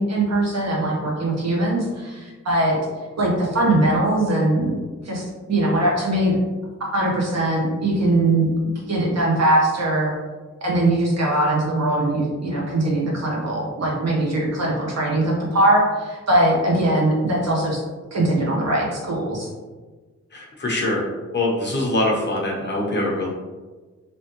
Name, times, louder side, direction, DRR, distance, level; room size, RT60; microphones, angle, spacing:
voice 1, 0.0-2.8 3.2-4.7 5.0-6.4 6.9-8.5 8.9-10.1 10.6-17.8 18.1-19.5, right 1 dB, 60° right, -3 dB, 1.0 m, -21 dB
voice 2, 20.3-21.1 21.3-23.3, left 1 dB, 35° left, -3 dB, 0.9 m, -23 dB
3.4 x 2.9 x 3.0 m, 1.3 s
wide cardioid pair, 140°, 29 cm